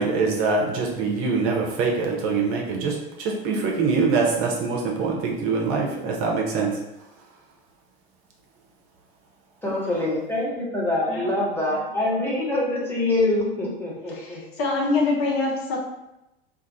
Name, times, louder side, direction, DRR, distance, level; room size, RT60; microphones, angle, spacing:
voice 1, 0.0-6.7, right 4 dB, 45° right, 0 dB, 0.8 m, -24 dB
voice 2, 9.6-14.4, left 2 dB, 5° left, -6 dB, 1.4 m, -25 dB
voice 3, 14.1-15.8, left 3 dB, 45° left, -1 dB, 0.8 m, -25 dB
2.5 x 2.4 x 4.0 m, 0.92 s
hypercardioid pair, 80°, 30 cm